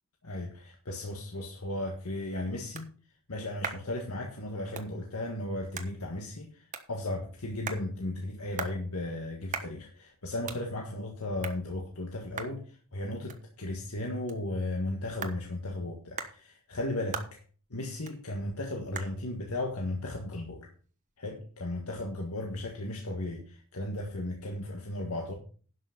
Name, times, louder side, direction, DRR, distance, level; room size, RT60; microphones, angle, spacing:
voice 1, 0.2-2.9 3.3-6.5 6.9-12.7 12.9-17.4 17.7-20.7 21.2-25.3, left 1 dB, 80° left, 1.7 m, -35 dB
sound 1, 1.9-21.2, right 5 dB, 35° right, 1.3 m, -45 dB
11.5 x 6.0 x 5.8 m
head